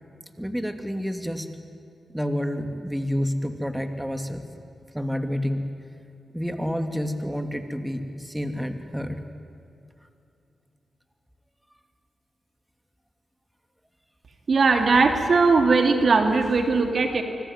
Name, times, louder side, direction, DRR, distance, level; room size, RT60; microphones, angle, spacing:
voice 1, 0.4-1.5 2.1-4.4 4.9-5.7 6.3-9.2, equal, 5° right, 7 dB, 2.8 m, -29 dB
voice 2, 14.5-17.2, right 4 dB, 60° right, 5 dB, 3.0 m, -19 dB
25.5 x 24.0 x 9.7 m, 2.7 s
supercardioid pair, 40°, 0 cm